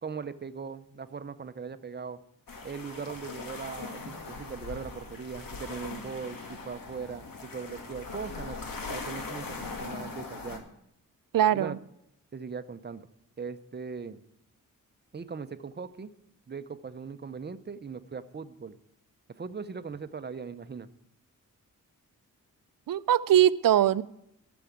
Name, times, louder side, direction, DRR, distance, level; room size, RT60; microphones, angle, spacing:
voice 1, 0.0-2.2 2.6-10.6 11.5-11.8 12.3-13.1 13.4-14.2 15.1-16.1 16.5-18.8 19.3-20.9, right 5 dB, 30° right, 12 dB, 0.6 m, -39 dB
sound 1, 2.5-10.6, left 3 dB, 85° left, 2.0 m, -40 dB
voice 2, 11.3-11.8 22.9-24.0, right 11 dB, 85° right, 16 dB, 0.5 m, -22 dB
13.0 x 7.0 x 8.6 m, 0.78 s
wide cardioid pair, 145°, 33 cm